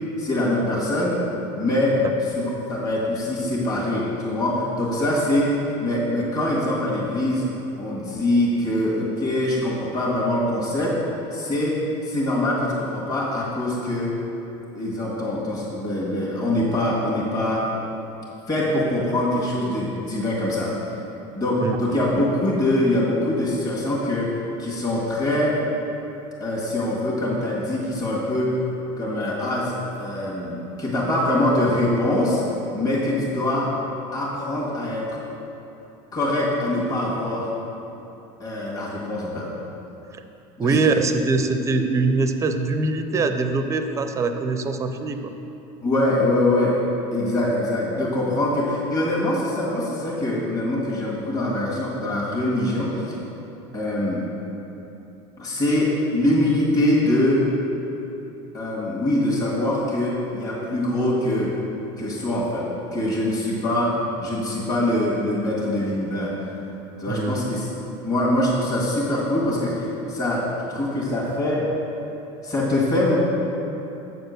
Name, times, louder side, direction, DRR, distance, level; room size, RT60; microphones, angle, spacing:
voice 1, 0.2-1.2 1.6-2.0 2.2-5.5 5.8-7.4 7.8-11.0 11.3-11.8 12.0-14.2 14.7-17.6 18.5-20.7 21.3-25.6 26.4-28.5 29.0-32.4 32.7-33.7 34.1-35.0 36.1-37.5 38.4-39.5 40.6-40.8 45.8-46.8 47.1-53.1 53.7-54.2 55.4-57.4 58.5-61.5 62.0-62.7 62.9-63.9 64.2-66.3 67.0-67.7 68.0-71.7 72.4-73.2, left 1 dB, 25° left, -6 dB, 1.8 m, -23 dB
voice 2, 21.6-22.0 40.6-45.2 67.1-67.4, right 3 dB, 20° right, 7 dB, 0.5 m, -23 dB
8.2 x 4.3 x 6.6 m, 3.0 s
supercardioid pair, 130°, 15 cm